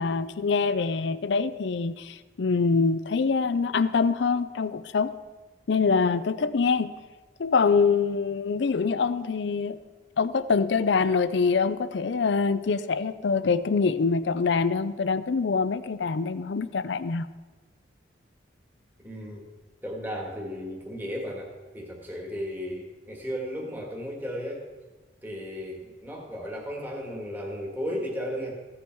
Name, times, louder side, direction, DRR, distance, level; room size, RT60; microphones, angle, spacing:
voice 1, 0.0-5.1 5.7-6.9 7.4-9.8 10.2-17.3, left 5 dB, 65° left, 14 dB, 0.5 m, -25 dB
voice 2, 19.0-19.4 19.8-24.7 25.2-28.5, equal, 10° right, -1 dB, 1.8 m, -35 dB
15.0 x 8.4 x 4.6 m, 1.3 s
head